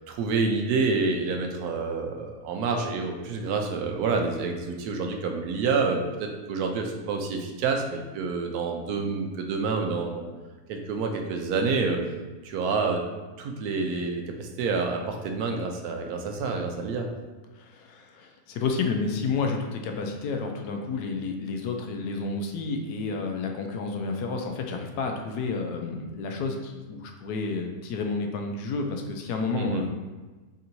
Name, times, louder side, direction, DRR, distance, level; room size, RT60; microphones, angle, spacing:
voice 1, 0.1-10.2 10.7-12.0 12.4-13.0 13.4-17.1 29.6-29.8, right 4 dB, 80° right, 3 dB, 1.1 m, -28 dB
voice 2, 17.5-29.9, left 4 dB, 90° left, 3 dB, 1.1 m, -30 dB
3.6 x 2.6 x 4.3 m, 1.3 s
omnidirectional pair, 1.6 m